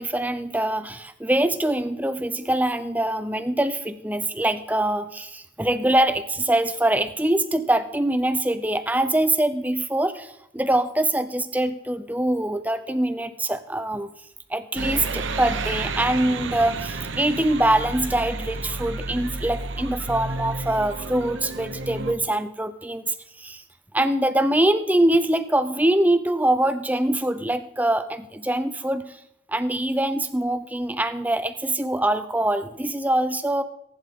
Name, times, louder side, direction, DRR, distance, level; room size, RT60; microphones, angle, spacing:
voice 1, 0.0-14.1 14.5-23.6 23.9-29.2 29.5-33.6, right 1 dB, 10° right, 11 dB, 0.6 m, -24 dB
sound 1, 14.8-22.1, right 3 dB, 70° right, 1.0 m, -31 dB
23.0 x 11.0 x 3.8 m, 0.81 s
head